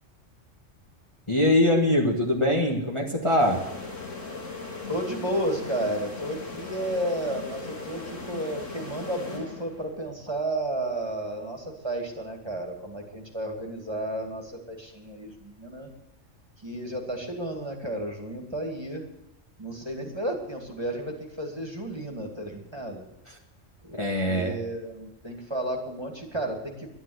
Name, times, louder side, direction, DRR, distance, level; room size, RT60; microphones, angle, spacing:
voice 1, 1.3-3.6 24.0-24.6, left 1 dB, 25° left, -1 dB, 1.6 m, -22 dB
sound 1, 3.4-10.0, left 4 dB, 85° left, 3.2 m, -38 dB
voice 2, 4.9-15.9 16.6-19.0 19.6-23.0 23.8-26.9, right 1 dB, 20° right, 2 dB, 2.3 m, -32 dB
11.5 x 11.0 x 8.0 m, 0.89 s
omnidirectional pair, 1.3 m